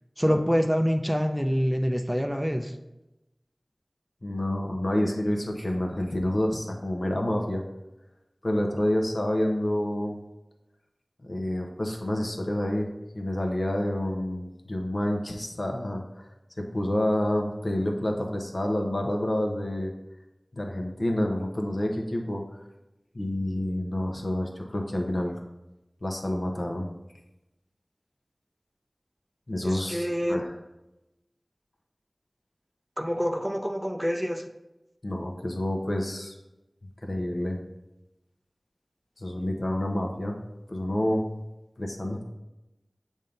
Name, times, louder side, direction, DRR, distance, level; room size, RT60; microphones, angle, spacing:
voice 1, 0.2-2.7 29.6-30.4 33.0-34.4, equal, 5° right, 5 dB, 0.4 m, -26 dB
voice 2, 4.2-7.6 8.4-10.2 11.3-12.9 13.1-16.3 16.6-19.9 20.6-22.4 23.1-25.3 26.0-26.9 29.5-30.6 35.0-36.3 37.0-37.6 39.2-40.3 40.7-41.2 41.8-42.2, left 1 dB, 65° left, 1 dB, 0.9 m, -28 dB
7.4 x 2.7 x 5.1 m, 0.97 s
wide cardioid pair, 50°, 0 cm